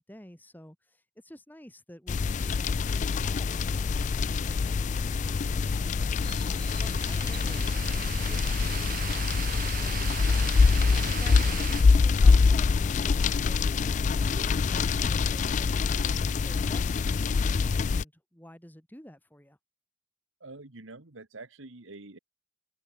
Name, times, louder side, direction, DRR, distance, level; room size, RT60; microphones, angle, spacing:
voice 1, 0.0-5.8 6.4-7.8 9.0-9.3 9.6-10.5 10.8-19.6, equal, 10° left, 2.6 m, -51 dB
sound 1, 2.1-18.0, left 4 dB, 40° left, 0.3 m, -25 dB
sound 2, 3.2-8.4, right 2 dB, 20° right, 1.2 m, -46 dB
sound 3, 6.6-11.8, right 10 dB, 45° right, 0.6 m, -38 dB
voice 2, 20.4-22.2, right 2 dB, 75° right, 1.7 m, -46 dB
head